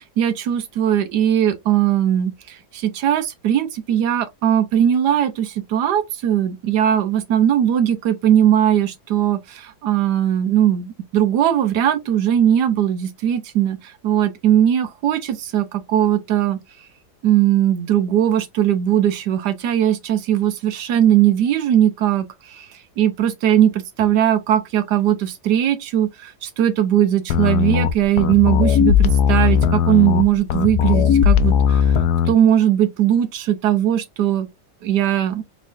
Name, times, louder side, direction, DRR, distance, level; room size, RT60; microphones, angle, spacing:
voice 1, 0.2-16.6 17.2-22.7 23.0-31.9 32.3-34.5 34.8-35.4, right 10 dB, 85° right, 1.4 m, -19 dB
sound 1, 27.3-32.3, left 8 dB, 80° left, 1.1 m, -17 dB
4.1 x 3.7 x 2.6 m
omnidirectional pair, 1.8 m